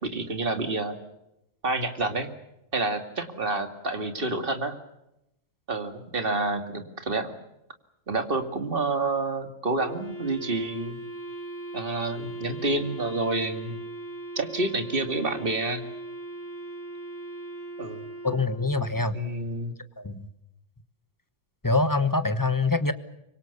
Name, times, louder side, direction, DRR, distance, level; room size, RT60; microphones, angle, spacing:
voice 1, 0.0-1.0 1.6-2.3 2.7-4.8 5.7-7.3 8.1-11.0 11.7-13.8 14.4-15.8 17.8-18.1 19.1-19.7, right 2 dB, 45° right, 7 dB, 2.4 m, -28 dB
Wind instrument woodwind instrument, 9.8-19.0, right 2 dB, 70° left, 4.1 m, -39 dB
voice 2, 18.2-19.2 20.0-20.3 21.6-22.9, left 3 dB, 15° left, 11 dB, 1.3 m, -24 dB
25.5 x 23.5 x 7.0 m, 0.87 s
omnidirectional pair, 1.3 m